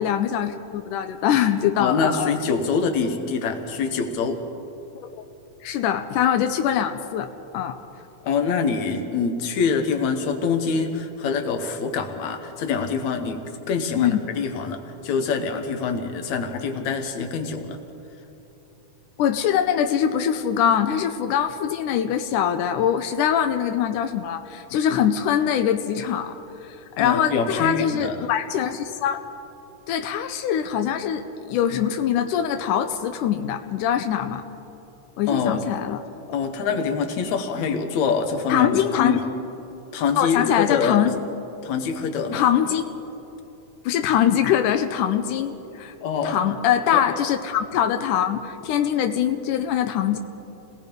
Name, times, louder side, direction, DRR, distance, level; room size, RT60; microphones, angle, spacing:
voice 1, 0.0-2.3 5.0-5.2 5.6-7.8 14.0-14.2 19.2-26.4 26.6-29.2 29.9-34.4 35.2-36.0 38.5-39.2 40.2-41.2 42.3-43.0 43.9-45.9 46.2-50.2, left 9 dB, 90° left, 7 dB, 2.3 m, -23 dB
voice 2, 1.8-4.4 8.2-13.4 13.7-17.8 27.0-28.3 35.3-35.6 36.3-39.2 39.9-41.0 41.6-42.4 46.0-46.4 46.9-47.0, left 5 dB, 65° left, 6 dB, 2.7 m, -25 dB
29.0 x 19.0 x 5.3 m, 2.9 s
omnidirectional pair, 3.6 m